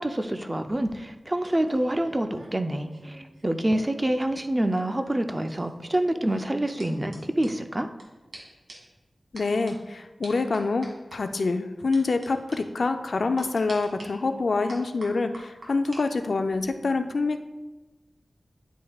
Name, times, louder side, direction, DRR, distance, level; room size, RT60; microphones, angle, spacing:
voice 1, 0.0-7.9, right 1 dB, 25° right, 7 dB, 0.5 m, -27 dB
sound 1, 0.6-4.1 4.3-8.0 8.3-8.4 8.7-9.0 9.4-9.7 10.2-11.2 11.9-12.3 12.5-12.6 13.4-14.1 14.7-16.0 16.3-16.7, right 1 dB, 70° right, 1.8 m, -47 dB
voice 2, 9.3-17.4, left 3 dB, 75° left, 8 dB, 0.4 m, -26 dB
9.7 x 5.2 x 2.4 m, 1.1 s
wide cardioid pair, 60°, 0 cm